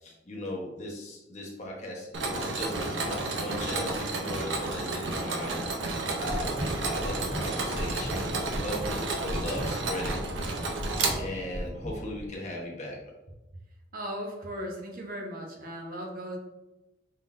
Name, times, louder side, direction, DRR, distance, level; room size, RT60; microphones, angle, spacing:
voice 1, 0.0-8.3 8.6-10.2 10.6-10.8 11.2-13.0, left 1 dB, 40° left, -2 dB, 1.1 m, -38 dB
Mechanisms, 2.1-11.7, right 3 dB, 85° right, 0.7 m, -31 dB
sound 1, 6.1-12.3, equal, ahead, 1.1 m, -37 dB
voice 2, 13.9-16.4, equal, 50° right, 1 dB, 0.8 m, -37 dB
5.5 x 3.6 x 2.6 m, 1.0 s
head